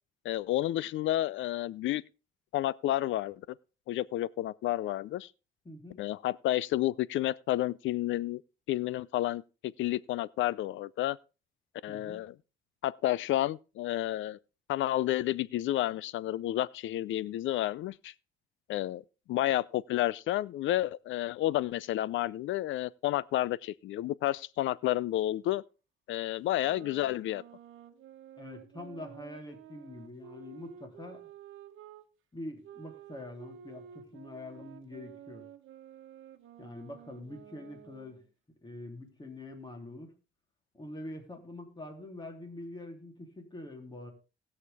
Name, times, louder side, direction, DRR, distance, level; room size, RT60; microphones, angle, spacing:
voice 1, 0.2-2.0 2.5-3.4 3.9-5.3 6.0-8.4 8.7-11.2 11.8-12.3 12.8-14.4 14.7-18.1 18.7-19.0 19.3-25.6 26.1-27.4, left 14 dB, 75° left, 0.5 m, -30 dB
voice 2, 5.6-6.0 11.9-12.3 28.4-31.2 32.3-35.4 36.6-38.2 38.6-40.1 40.7-44.1, left 1 dB, 20° left, 3.2 m, -45 dB
sound 1, 26.4-32.1 32.6-38.2, right 9 dB, 80° right, 1.1 m, -51 dB
19.5 x 6.6 x 3.5 m
cardioid pair, 90°, 20 cm